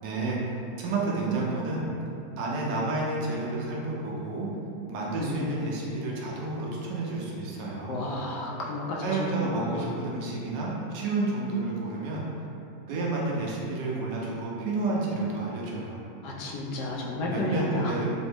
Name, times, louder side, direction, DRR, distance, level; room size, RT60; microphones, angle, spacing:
voice 1, 0.0-1.9 2.4-4.5 4.9-8.0 9.0-12.3 12.9-16.0 17.3-18.0, right 2 dB, 40° right, -4 dB, 0.5 m, -30 dB
voice 2, 5.2-5.6 7.9-10.0 16.2-17.9, left 1 dB, 35° left, -3 dB, 0.3 m, -32 dB
2.5 x 2.1 x 3.3 m, 2.6 s
supercardioid pair, 175°, 0 cm